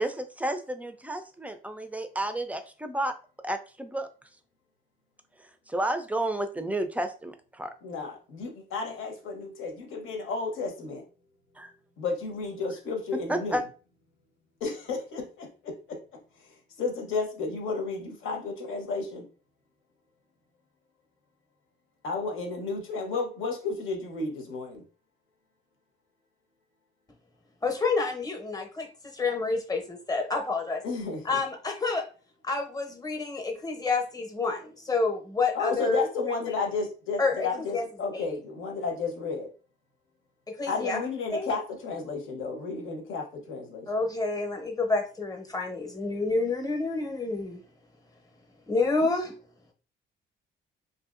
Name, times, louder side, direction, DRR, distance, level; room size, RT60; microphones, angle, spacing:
voice 1, 0.0-3.1 3.4-4.1 5.7-7.7 11.6-11.7 13.3-13.6, right 1 dB, 5° right, 8 dB, 0.4 m, -31 dB
voice 2, 7.8-11.0 12.0-13.6 14.6-16.0 16.4-16.5 16.8-19.3 22.0-24.8 30.8-31.4 35.5-39.5 40.7-43.9, left 4 dB, 80° left, 2 dB, 0.9 m, -32 dB
voice 3, 27.6-28.9 29.1-30.8 31.2-32.0 32.4-36.4 37.2-37.5 37.7-37.8 38.1-38.3 40.6-41.0 41.3-41.5 43.9-47.6 48.7-49.3, left 3 dB, 20° left, 3 dB, 0.8 m, -28 dB
2.7 x 2.6 x 2.4 m, 0.36 s
cardioid pair, 90°, 20 cm